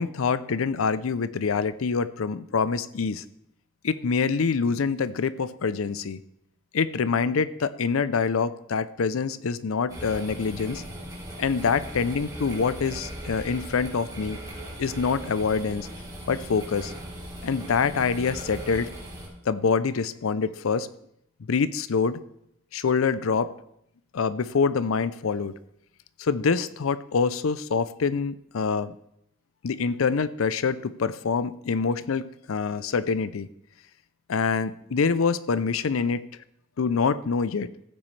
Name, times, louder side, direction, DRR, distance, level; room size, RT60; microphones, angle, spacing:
voice 1, 0.0-3.2 3.8-6.2 6.7-10.8 11.4-14.4 14.8-15.9 16.3-16.9 17.4-18.9 19.5-20.9 21.5-22.2 22.7-23.5 24.1-25.5 26.2-28.9 29.6-33.5 34.3-36.2 36.8-37.7, left 5 dB, 85° left, 16 dB, 0.5 m, -25 dB
sound 1, 9.9-19.3, right 1 dB, 20° right, 3.4 m, -39 dB
14.5 x 9.0 x 3.3 m, 0.75 s
head